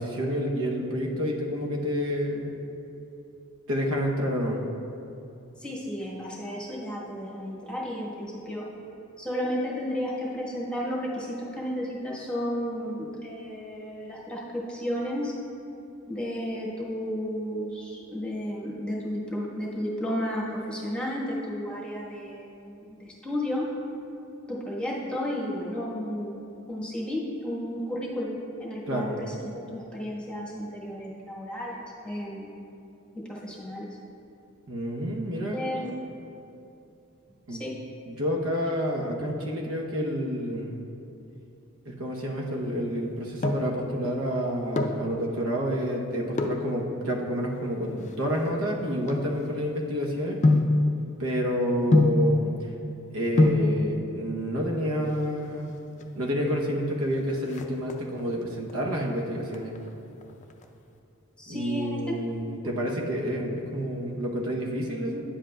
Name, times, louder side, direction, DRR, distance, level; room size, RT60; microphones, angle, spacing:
voice 1, 0.0-2.5 3.7-4.6 28.9-29.1 34.7-35.6 37.5-37.6 38.1-40.8 41.9-50.4 51.2-52.7 53.1-55.7 56.1-59.7 61.5-65.2, equal, 65° right, -1 dB, 0.8 m, -29 dB
voice 2, 5.6-8.7 9.2-15.3 16.1-23.7 24.5-26.4 26.7-32.5 33.1-33.9 35.5-35.9 37.5-37.7 61.4-62.1, equal, 5° left, -6 dB, 1.2 m, -33 dB
sound 1, 43.0-43.8 44.5-45.1 46.3-46.7 47.4-49.8 50.4-50.8 51.9-52.3 53.1-53.2 53.4-53.7 54.8-55.4 55.7-55.8 56.0-56.1 56.5-56.9 57.2-58.3 58.7-59.1 59.5-60.6 60.9-61.0, left 2 dB, 35° left, 0.4 m, -24 dB
10.0 x 7.5 x 2.2 m, 2.7 s
head